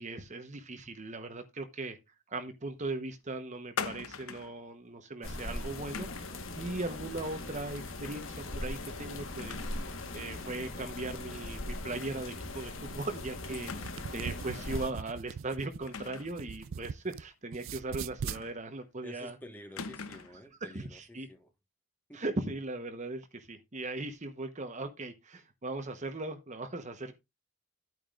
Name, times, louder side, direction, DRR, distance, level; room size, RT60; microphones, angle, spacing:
voice 1, 0.0-2.0 2.3-9.6 10.1-13.7 14.1-19.4 20.6-21.3 22.1-27.2, right 2 dB, 35° right, 1.0 m, -38 dB
sound 1, 3.8-4.6 5.9-6.4 8.0-8.4 8.7-8.8 9.4-9.9 10.3-10.4 12.0-12.2 12.5-12.6 13.7-14.3 15.9-16.4 18.3-18.8 19.8-20.4, left 5 dB, 85° left, 0.8 m, -41 dB
sound 2, 5.2-14.9, left 2 dB, 65° left, 1.4 m, -40 dB
sound 3, 13.8-17.2 17.5-18.4, right 7 dB, 65° right, 0.4 m, -40 dB
voice 2, 19.0-21.5 22.1-22.2, equal, 10° left, 1.4 m, -50 dB
11.0 x 9.0 x 2.5 m
head